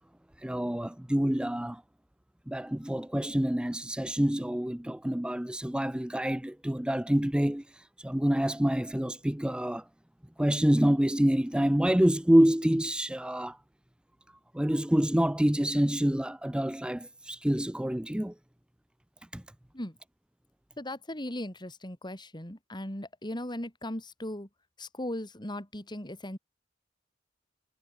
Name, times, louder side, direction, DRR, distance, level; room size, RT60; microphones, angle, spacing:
voice 1, 0.4-1.8 2.5-9.8 10.4-13.6 14.5-18.3 19.3-19.4, equal, 5° right, 0.5 m, -27 dB
voice 2, 20.8-24.5 24.8-26.4, left 1 dB, 25° left, 4.8 m, -38 dB
head